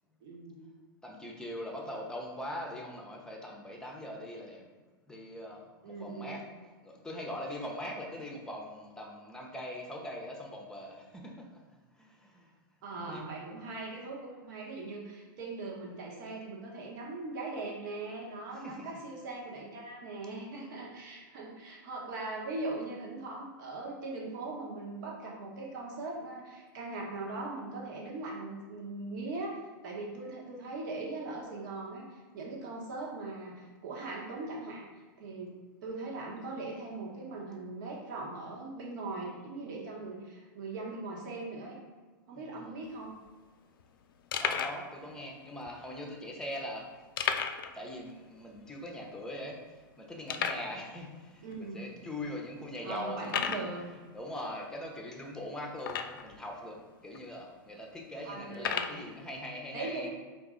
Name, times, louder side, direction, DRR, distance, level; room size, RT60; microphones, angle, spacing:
voice 1, 0.2-0.7 5.8-6.4 12.8-34.8 35.2-35.5 35.8-41.8 42.3-43.1 51.4-51.8 52.8-53.8 58.2-59.0 59.7-60.1, right 3 dB, 60° right, -2 dB, 1.1 m, -40 dB
voice 2, 1.0-4.6 5.1-6.5 6.8-11.6 12.0-12.5 13.0-13.2 18.5-19.1 42.3-42.8 44.4-46.9 47.7-60.1, left 1 dB, 5° left, 0 dB, 0.7 m, -42 dB
sound 1, 42.9-43.0 43.1-43.3 43.8-43.9 44.3-44.8 45.6-45.7 47.2-47.8 48.0-48.1 48.6-48.7 49.3-49.4 50.3-50.7 51.5-51.6 52.2-52.3 53.2-53.7 55.8-56.4 57.1-57.2 58.5-59.0, left 7 dB, 75° left, 0.4 m, -33 dB
3.8 x 2.6 x 3.7 m, 1.4 s
hypercardioid pair, 115°, 11 cm